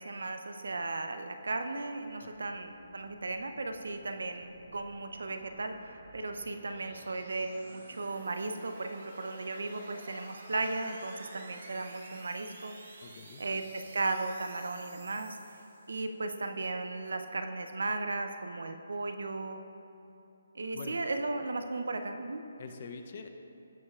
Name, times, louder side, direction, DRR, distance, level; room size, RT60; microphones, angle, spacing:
voice 1, 0.0-12.7 13.4-15.4 15.9-19.6 20.5-22.5, right 3 dB, 80° right, 7 dB, 0.7 m, -36 dB
sound 1, 1.7-16.2, right 2 dB, 55° right, 1.3 m, -53 dB
voice 2, 13.0-13.4 20.7-21.0 22.6-23.3, left 5 dB, 45° left, 6 dB, 0.6 m, -44 dB
15.5 x 5.4 x 2.4 m, 2.9 s
hypercardioid pair, 160°, 0 cm